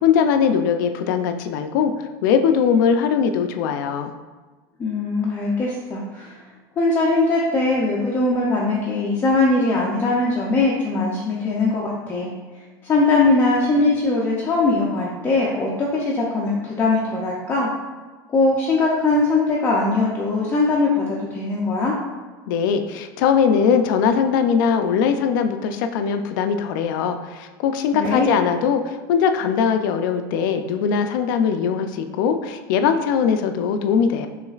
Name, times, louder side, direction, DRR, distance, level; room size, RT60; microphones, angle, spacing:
voice 1, 0.0-4.1 22.5-34.3, left 7 dB, 75° left, 7 dB, 0.4 m, -20 dB
voice 2, 4.8-6.4 6.8-12.3 12.8-17.7 18.3-21.9 27.9-28.3, left 3 dB, 20° left, -4 dB, 0.4 m, -21 dB
6.0 x 3.2 x 2.4 m, 1.3 s
cardioid pair, 165°, 11 cm